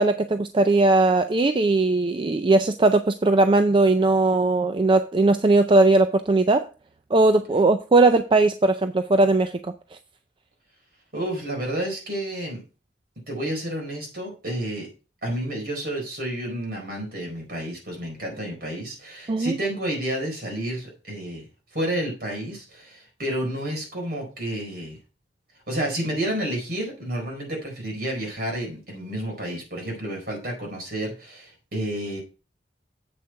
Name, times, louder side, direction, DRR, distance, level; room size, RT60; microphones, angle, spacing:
voice 1, 0.0-6.7 7.1-9.7 19.3-19.6, right 2 dB, 30° right, 0.4 m, -19 dB
voice 2, 11.1-12.6 13.3-14.9 15.2-21.4 21.7-25.0 25.7-32.2, right 1 dB, 55° right, 4.4 m, -30 dB
8.0 x 6.6 x 4.5 m
head